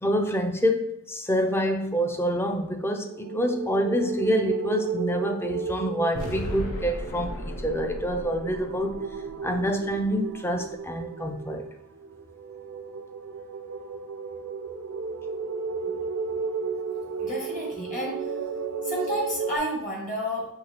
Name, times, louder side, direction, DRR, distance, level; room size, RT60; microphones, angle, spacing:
voice 1, 0.0-8.9 9.4-11.7, equal, 10° left, 5 dB, 0.3 m, -27 dB
sound 1, 3.0-19.6, right 5 dB, 70° right, 0.4 m, -34 dB
sound 2, 6.1-10.3, left 1 dB, 70° left, 0.6 m, -36 dB
voice 2, 17.2-18.3 18.8-20.5, equal, 35° left, -2 dB, 1.2 m, -31 dB
5.5 x 3.2 x 2.8 m, 0.79 s
head